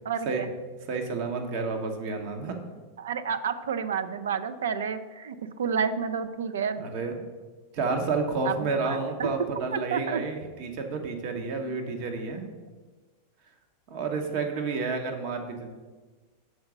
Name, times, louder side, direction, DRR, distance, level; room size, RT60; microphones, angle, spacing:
voice 1, 0.1-0.5 3.0-6.9 8.4-9.3 9.7-10.2, right 6 dB, 80° right, 12 dB, 0.5 m, -30 dB
voice 2, 0.9-2.6 6.8-7.1 7.7-12.5 13.9-15.7, right 4 dB, 55° right, 4 dB, 1.1 m, -30 dB
6.3 x 4.0 x 6.0 m, 1.3 s
hypercardioid pair, 110°, 0 cm